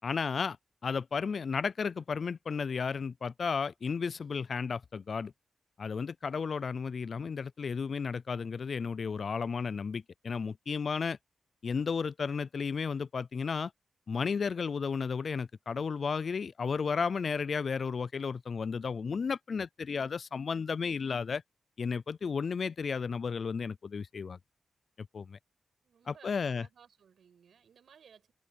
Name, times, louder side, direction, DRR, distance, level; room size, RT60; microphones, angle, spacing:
voice 1, 0.0-0.6 0.8-5.3 5.8-11.2 11.6-13.7 14.1-21.4 21.8-24.4 25.0-25.4 26.1-26.7, left 5 dB, 55° left, 0.3 m, -33 dB
voice 2, 25.8-28.3, right 7 dB, 85° right, 5.6 m, -59 dB
wide cardioid pair, 105°, 0 cm